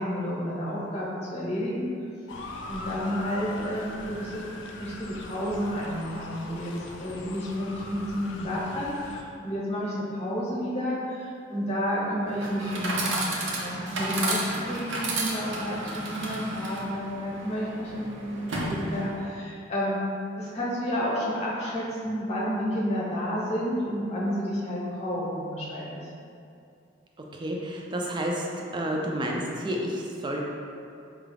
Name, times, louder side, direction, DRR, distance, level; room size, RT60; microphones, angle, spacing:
voice 1, 0.0-1.9 2.7-4.4 4.8-20.0 20.4-26.0, equal, 35° left, -6 dB, 0.8 m, -31 dB
Motor vehicle (road) / Siren, 2.3-9.2, left 2 dB, 70° left, 0.4 m, -41 dB
Chatter / Coin (dropping), 12.3-19.3, right 2 dB, 70° right, 0.6 m, -32 dB
voice 2, 27.3-28.5 28.7-30.4, equal, 25° right, -1 dB, 0.4 m, -30 dB
4.7 x 2.3 x 3.3 m, 2.5 s
head